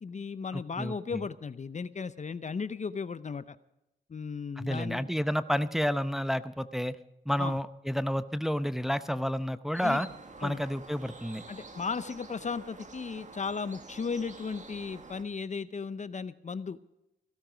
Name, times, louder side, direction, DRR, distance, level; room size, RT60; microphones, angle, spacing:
voice 1, 0.0-3.6 4.1-5.1 7.4-7.6 9.8-10.0 10.4-10.6 11.5-16.8, left 5 dB, 40° left, 15 dB, 0.7 m, -36 dB
voice 2, 0.5-1.2 4.6-7.0 7.3-10.1 10.4-11.4, equal, ahead, 12 dB, 0.7 m, -30 dB
sound 1, 9.7-15.2, right 3 dB, 45° right, 1.9 m, -48 dB
16.5 x 13.0 x 5.1 m, 0.88 s
cardioid pair, 55°, 18 cm